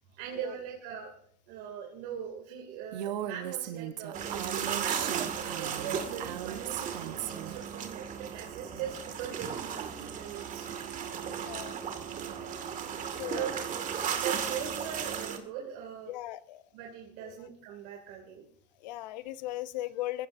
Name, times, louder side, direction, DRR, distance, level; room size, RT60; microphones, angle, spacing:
voice 1, 0.1-1.1 1.5-10.8 13.3-13.6 14.1-16.1 16.7-18.4, right 8 dB, 70° right, 0 dB, 2.8 m, -40 dB
Female speech woman speaking, 2.9-7.6, right 11 dB, 85° right, 1.1 m, -38 dB
sound 1, 4.1-15.4, right 7 dB, 40° right, 2.2 m, -36 dB
voice 2, 11.2-11.7 13.1-13.5 16.1-16.6 17.2-17.4 18.8-20.3, left 15 dB, 80° left, 15 dB, 0.8 m, -38 dB
22.5 x 16.0 x 2.7 m, 0.65 s
supercardioid pair, 110°, 21 cm